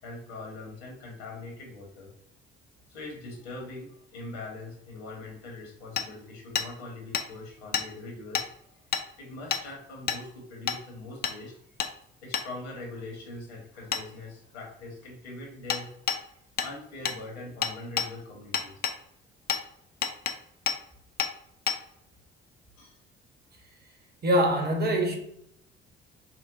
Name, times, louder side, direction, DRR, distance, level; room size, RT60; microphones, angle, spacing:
voice 1, 0.0-2.1 2.9-8.5 8.7-8.8 9.2-11.6 12.2-15.9 16.6-18.8 22.8-23.0, left 2 dB, 75° left, 1.2 m, -42 dB
Hammer, 6.0-6.1 6.6-6.7 7.1-7.3 7.7-7.9 8.3-8.5 8.9-9.0 9.5-9.6 10.1-10.2 10.7-10.8 11.2-11.4 11.8-11.9 12.3-12.5 13.9-14.0 15.7-15.8 16.1-16.2 16.6-16.7 17.1-17.2 17.6-18.1 18.5-19.0 19.5-19.6 20.0-20.4 20.7-20.8 21.2-21.3 21.7-21.8, left 7 dB, 30° left, 0.5 m, -28 dB
voice 2, 24.2-25.2, equal, 30° right, 1.1 m, -23 dB
5.8 x 2.0 x 2.6 m
figure-of-eight pair, 50°, 32 cm